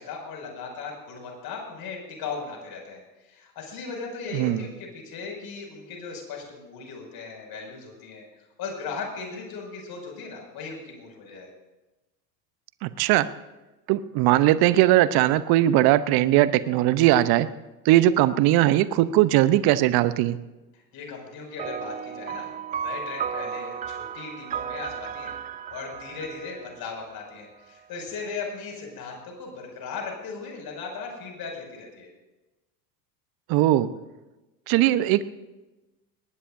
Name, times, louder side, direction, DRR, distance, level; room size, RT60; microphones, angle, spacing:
voice 1, 0.0-8.2 8.6-11.5 20.7-22.5 22.8-25.3 25.7-32.1, left 5 dB, 45° left, 1 dB, 6.3 m, -37 dB
voice 2, 4.3-4.6 12.8-13.3 13.9-17.5 17.8-20.4 33.5-33.9 34.7-35.2, right 14 dB, 45° right, 15 dB, 0.8 m, -19 dB
sound 1, 21.6-27.4, right 8 dB, 20° right, 0.4 m, -34 dB
20.5 x 18.5 x 2.7 m, 1.1 s
hypercardioid pair, 80°, 50 cm